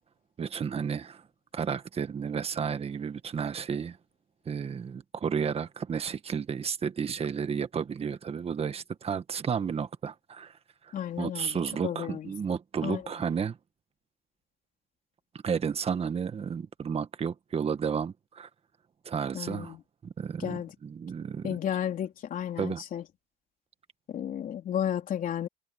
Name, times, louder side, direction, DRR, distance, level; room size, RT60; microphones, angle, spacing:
voice 1, 0.4-1.2 1.5-4.0 4.5-10.6 10.8-13.6 15.4-18.5 19.1-19.8 20.0-21.6 22.6-22.8, right 6 dB, 35° right, 1.6 m, -32 dB
voice 2, 10.9-12.3 12.8-13.0 19.3-19.8 20.4-20.7 21.4-23.0 24.1-25.5, left 10 dB, 55° left, 3.6 m, -33 dB
cardioid pair, 110°, 17 cm